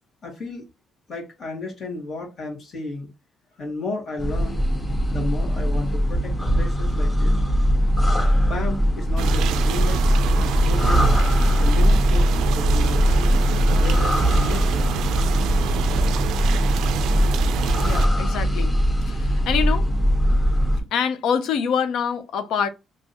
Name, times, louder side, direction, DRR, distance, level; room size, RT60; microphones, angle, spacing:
voice 1, 0.2-0.6 1.1-3.1 3.6-4.6 5.1-7.4 8.4-11.2 11.5-13.4 13.8-15.0, left 3 dB, 55° left, 1.8 m, -33 dB
sound 1, 4.2-20.8, equal, 20° left, 1.2 m, -20 dB
sound 2, 9.2-18.1, right 8 dB, 85° right, 0.3 m, -27 dB
voice 2, 17.8-18.7 19.1-19.9 20.9-22.7, left 7 dB, 80° left, 0.5 m, -25 dB
3.4 x 3.0 x 2.7 m
cardioid pair, 90°, 0 cm